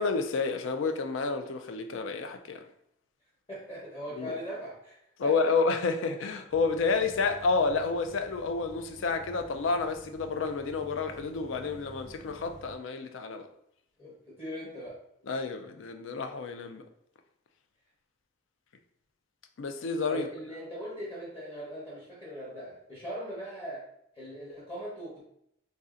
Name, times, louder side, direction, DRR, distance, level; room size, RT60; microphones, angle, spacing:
voice 1, 0.0-2.6 4.2-4.3 5.2-13.5 15.3-16.8 19.6-20.3, left 4 dB, 85° left, 0.4 m, -30 dB
voice 2, 3.5-5.5 14.0-15.0 20.1-23.9 24.1-25.2, equal, 25° left, 1.0 m, -40 dB
sound 1, 6.5-12.7, equal, 5° left, 0.6 m, -51 dB
3.2 x 2.7 x 3.7 m
head